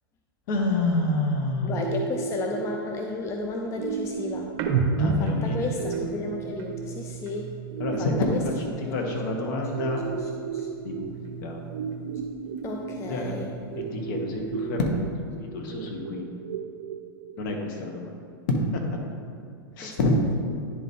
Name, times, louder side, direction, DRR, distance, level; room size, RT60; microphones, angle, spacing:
voice 1, 0.5-1.8 5.0-5.9 7.8-8.5 8.9-10.0 10.8-11.2 11.4-11.6 13.1-13.4 13.8-15.0 15.4-16.3 17.4-18.1 18.5-18.8 19.8-20.1, left 2 dB, 55° left, 2 dB, 1.3 m, -28 dB
voice 2, 1.6-4.5 5.2-7.5 8.0-8.4 8.8-9.2 9.4-9.5 10.2-10.7 12.6-13.5 19.8-20.0, left 3 dB, 20° left, 2 dB, 0.5 m, -34 dB
sound 1, 1.7-17.7, right 6 dB, 70° right, 0.5 m, -36 dB
sound 2, 4.5-8.1 8.4-10.3 10.5-12.4 12.8-14.6, right 3 dB, 45° right, 1.0 m, -33 dB
10.0 x 4.1 x 3.7 m, 2.4 s
hypercardioid pair, 120°, 13 cm